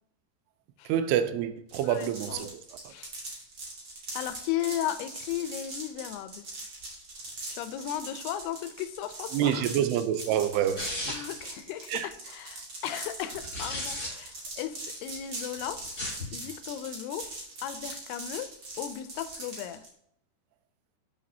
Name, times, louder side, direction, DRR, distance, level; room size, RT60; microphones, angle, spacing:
voice 1, 0.9-2.5 9.3-11.2 11.9-12.1, right 10 dB, 85° right, 2.6 m, -27 dB
sound 1, 1.7-19.9, right 2 dB, 45° right, 1.4 m, -41 dB
voice 2, 1.8-2.5 2.9-3.1 4.1-6.5 7.5-9.7 11.1-15.8 16.3-17.3 17.6-18.5 18.8-19.8, left 11 dB, 80° left, 2.5 m, -36 dB
sound 2, 10.8-11.4 13.3-14.1 15.8-16.3, left 1 dB, 30° left, 2.1 m, -34 dB
7.2 x 5.9 x 2.7 m
omnidirectional pair, 4.7 m